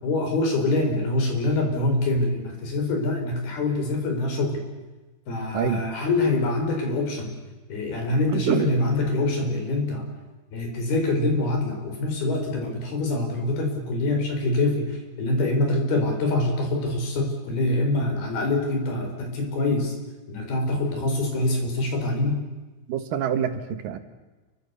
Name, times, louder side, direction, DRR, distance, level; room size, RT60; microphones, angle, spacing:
voice 1, 0.0-4.6 5.3-7.3 7.7-10.1 10.5-19.9 20.3-22.4, left 2 dB, 70° left, 3 dB, 6.4 m, -25 dB
voice 2, 8.3-8.7 22.9-24.0, right 8 dB, 65° right, 8 dB, 3.2 m, -26 dB
29.5 x 23.5 x 7.0 m, 1.2 s
omnidirectional pair, 4.6 m